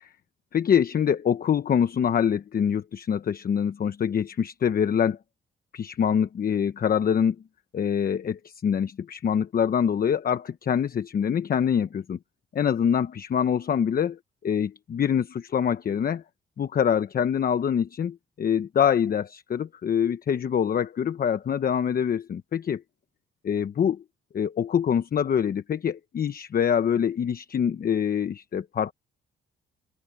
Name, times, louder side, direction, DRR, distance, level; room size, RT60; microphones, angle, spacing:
voice 1, 0.5-5.2 5.7-7.4 7.7-12.2 12.5-14.1 14.4-16.2 16.6-22.8 23.4-24.0 24.3-28.9, left 8 dB, 50° left, 1.0 m, -25 dB
open air
cardioid pair, 90°, 20 cm